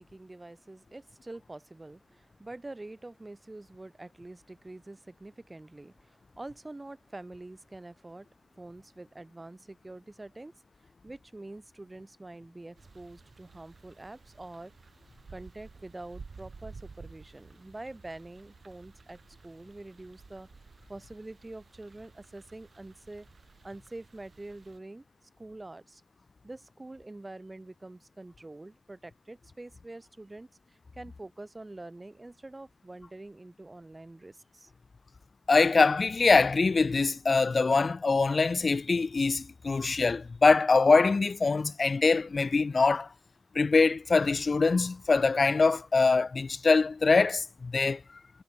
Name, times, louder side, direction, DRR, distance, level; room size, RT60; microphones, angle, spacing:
voice 1, 0.0-10.5 10.8-14.7 15.3-20.5 20.9-23.3 23.6-25.0 25.4-26.0 26.4-34.7, right 2 dB, 25° right, 4.0 m, -46 dB
sound 1, 12.7-24.8, right 4 dB, 60° right, 4.8 m, -53 dB
voice 2, 35.5-43.1 43.5-48.0, left 4 dB, 50° left, 1.1 m, -23 dB
wide cardioid pair, 85°, 0 cm